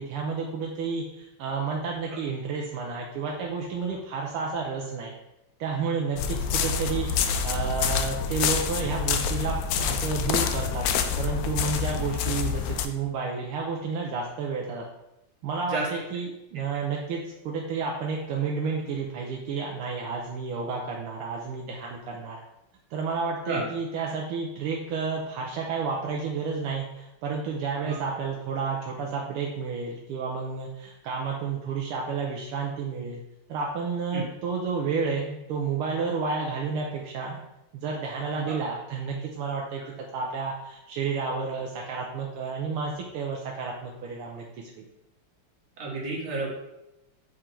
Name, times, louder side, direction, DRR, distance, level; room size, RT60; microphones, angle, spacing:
voice 1, 0.0-5.1 5.6-10.9 11.2-14.8 15.4-22.4 22.9-33.2 33.5-37.4 37.7-39.8 40.1-44.9, right 5 dB, 85° right, -1 dB, 1.6 m, -31 dB
sound 1, 6.2-12.9, left 6 dB, 75° left, 1.1 m, -27 dB
voice 2, 45.8-46.5, right 3 dB, 40° right, -4 dB, 1.8 m, -30 dB
6.5 x 3.7 x 4.4 m, 0.90 s
omnidirectional pair, 2.4 m